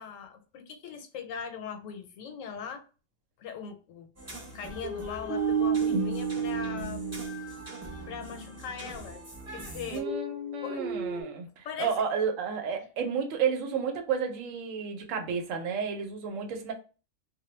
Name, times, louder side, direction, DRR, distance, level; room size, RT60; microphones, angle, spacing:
voice 1, 0.0-2.8 3.4-4.1 4.5-7.0 8.1-9.2 9.5-10.1 10.6-10.9 11.6-11.9, left 7 dB, 85° left, 1.0 m, -40 dB
sound 1, 4.2-10.0, right 1 dB, 20° right, 0.4 m, -44 dB
sound 2, 4.8-8.2 9.9-11.2, right 5 dB, 65° right, 0.7 m, -31 dB
voice 2, 9.9-16.7, right 6 dB, 85° right, 1.0 m, -31 dB
2.2 x 2.0 x 3.0 m
omnidirectional pair, 1.3 m